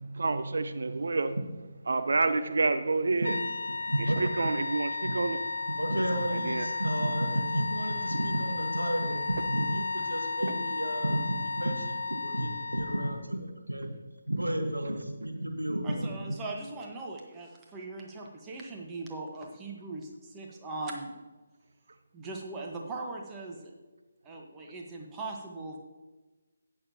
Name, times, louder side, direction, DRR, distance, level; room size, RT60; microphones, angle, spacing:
voice 1, 0.0-1.4 1.9-3.3 4.2-5.4 6.3-6.7, right 3 dB, 60° right, 9 dB, 0.6 m, -28 dB
sound 1, 3.2-13.2, left 4 dB, 65° left, 0.5 m, -34 dB
voice 2, 3.9-4.2 5.0-5.1 5.8-13.9 14.3-16.1, right 1 dB, 85° right, 3 dB, 1.6 m, -31 dB
voice 3, 15.8-21.1 22.1-23.7 24.2-25.8, right 2 dB, 15° right, -1 dB, 1.3 m, -40 dB
17.5 x 6.7 x 2.9 m, 1.2 s
figure-of-eight pair, 145°, 0 cm